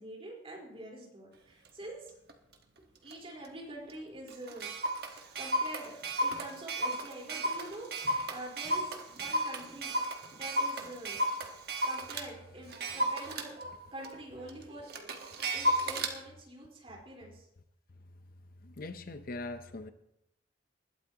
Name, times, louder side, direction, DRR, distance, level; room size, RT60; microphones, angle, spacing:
voice 1, 0.0-2.1 3.0-4.7 5.1-9.9 10.3-11.2 11.8-13.5 13.9-14.9 15.5-17.5, right 1 dB, 35° right, -2 dB, 4.3 m, -46 dB
Clock, 1.6-1.7 2.3-2.5 3.1-3.2 3.4-3.5 3.9-4.0 4.3-12.3 12.7-16.1, right 1 dB, 60° right, 1.5 m, -33 dB
voice 2, 18.6-19.9, left 2 dB, 55° left, 10 dB, 0.7 m, -41 dB
20.5 x 12.0 x 2.9 m, 0.82 s
head